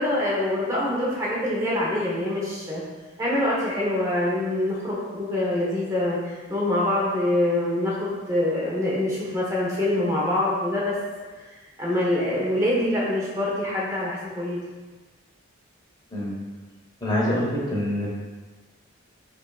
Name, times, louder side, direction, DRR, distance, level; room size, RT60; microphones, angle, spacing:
voice 1, 0.0-2.8 3.2-10.9 11.8-14.6, left 1 dB, 15° right, -6 dB, 0.8 m, -25 dB
voice 2, 17.0-18.1, left 1 dB, 20° left, -5 dB, 0.8 m, -25 dB
5.3 x 2.5 x 2.3 m, 1.3 s
head